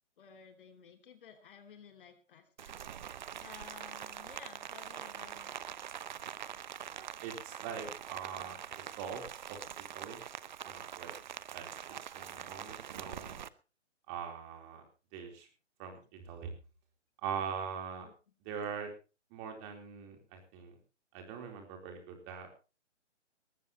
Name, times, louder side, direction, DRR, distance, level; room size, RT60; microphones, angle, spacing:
voice 1, 0.2-3.1 3.4-5.6 18.0-18.1, left 7 dB, 45° left, 7 dB, 2.7 m, -55 dB
Rain, 2.6-13.5, right 9 dB, 40° right, 0.7 m, -44 dB
voice 2, 7.2-9.6 9.9-10.2 10.6-11.1 11.5-13.4 14.1-14.8 15.1-15.5 15.8-16.5 17.2-18.1 18.4-18.9 19.3-20.8 21.1-22.5, right 7 dB, 25° right, 4 dB, 3.9 m, -42 dB
20.0 x 15.0 x 3.1 m, 0.32 s
figure-of-eight pair, 140°, 37 cm